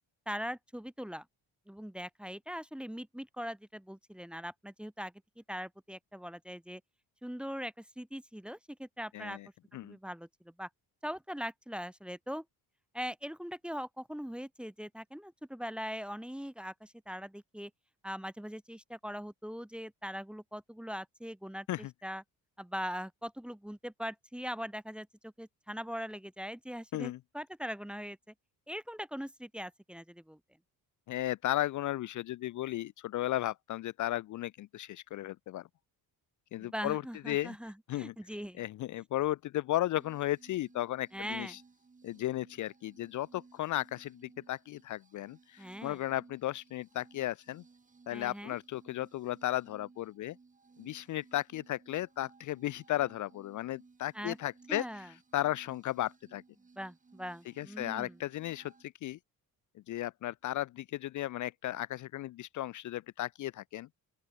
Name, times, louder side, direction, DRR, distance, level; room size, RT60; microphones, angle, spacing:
voice 1, 0.3-1.2 1.7-5.1 5.5-6.8 7.2-9.4 9.8-10.7 11.0-12.4 12.9-17.7 18.0-22.2 22.6-28.2 28.7-30.4 36.6-38.6 41.1-41.5 45.6-46.0 48.1-48.6 54.1-54.4 54.7-55.1 56.8-58.2, equal, 5° right, 0.8 m, -41 dB
voice 2, 9.1-9.5 9.7-10.0 21.7-21.9 26.9-27.2 31.1-35.7 36.5-37.6 37.9-38.1 38.6-41.6 42.0-47.6 48.1-50.4 50.8-55.1 55.3-56.4 57.6-58.7 59.0-59.2 59.9-63.9, left 14 dB, 55° left, 0.5 m, -35 dB
sound 1, 40.0-58.8, right 4 dB, 20° right, 3.0 m, -61 dB
open air
cardioid pair, 145°, 37 cm